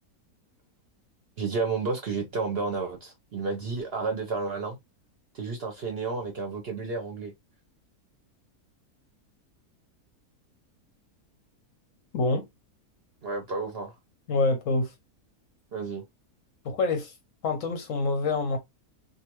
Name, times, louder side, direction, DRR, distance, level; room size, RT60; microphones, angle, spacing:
voice 1, 1.4-4.8 5.3-7.3 13.2-13.9 15.7-16.0, right 4 dB, 55° right, 0.7 m, -31 dB
voice 2, 12.1-12.5 14.3-14.9 16.6-17.1 17.4-18.6, left 3 dB, 65° left, 0.9 m, -26 dB
2.5 x 2.4 x 2.9 m
omnidirectional pair, 1.6 m